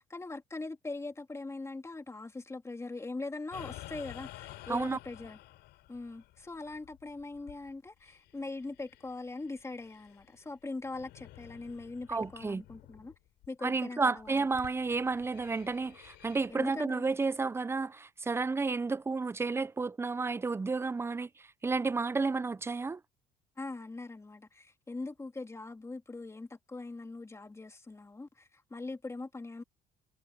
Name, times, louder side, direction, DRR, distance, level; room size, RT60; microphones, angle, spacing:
voice 1, 0.0-5.4 5.9-13.1 13.5-14.5 16.5-17.0 23.6-29.6, left 3 dB, 15° left, 2.8 m, -41 dB
sound 1, 3.5-10.5 10.8-13.2 13.4-13.6 14.2-16.5, left 16 dB, 85° left, 4.0 m, -51 dB
voice 2, 4.7-5.0 12.1-12.6 13.6-21.3 21.6-23.0, right 4 dB, 15° right, 0.5 m, -31 dB
cardioid pair, 110°, 17 cm